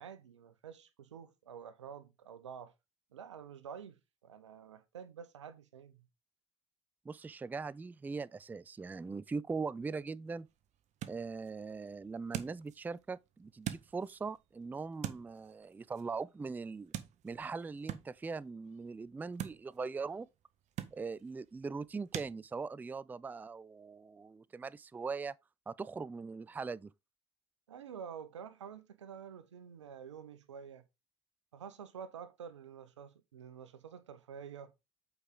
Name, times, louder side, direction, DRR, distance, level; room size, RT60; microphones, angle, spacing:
voice 1, 0.0-2.7 3.1-6.1 27.7-30.8 31.5-34.7, right 7 dB, 90° right, 0.9 m, -49 dB
voice 2, 7.1-10.5 11.1-16.9 17.2-20.3 20.9-25.4 25.7-26.9, right 4 dB, 10° right, 0.3 m, -41 dB
sound 1, 9.8-22.3, right 11 dB, 50° right, 1.0 m, -47 dB
8.0 x 5.0 x 3.8 m
hypercardioid pair, 70°, 15 cm